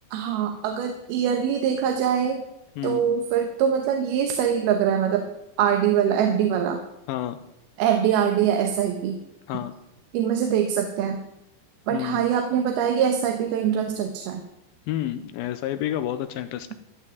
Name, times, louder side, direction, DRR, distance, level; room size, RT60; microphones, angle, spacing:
voice 1, 0.1-2.4 2.8-5.3 5.6-6.8 7.8-9.2 10.1-11.2 11.9-14.4, right 8 dB, 80° right, 5 dB, 2.9 m, -23 dB
voice 2, 7.1-7.4 9.5-9.7 11.9-12.3 14.9-16.7, left 12 dB, 80° left, 11 dB, 2.3 m, -29 dB
14.0 x 5.9 x 9.3 m, 0.87 s
omnidirectional pair, 4.4 m